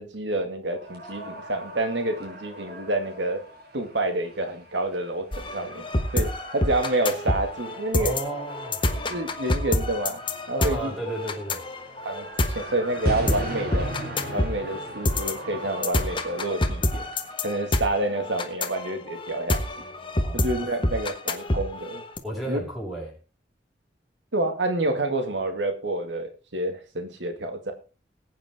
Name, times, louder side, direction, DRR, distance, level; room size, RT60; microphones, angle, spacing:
voice 1, 0.0-3.4 3.7-5.8 6.1-8.2 9.1-10.2 10.5-10.9 12.0-13.9 14.3-17.0 17.4-19.6 20.3-22.0 22.5-22.6 24.3-27.7, right 2 dB, 80° right, 7 dB, 2.1 m, -28 dB
Ramazan topu, 0.7-17.3, right 1 dB, 60° right, 5.3 m, -40 dB
sound 1, 5.3-22.2, left 1 dB, 30° left, 1.4 m, -27 dB
voice 2, 8.0-8.8 10.6-11.6 20.2-20.5 22.2-23.1, right 1 dB, ahead, -3 dB, 6.5 m, -33 dB
20.0 x 8.9 x 3.6 m, 0.33 s
head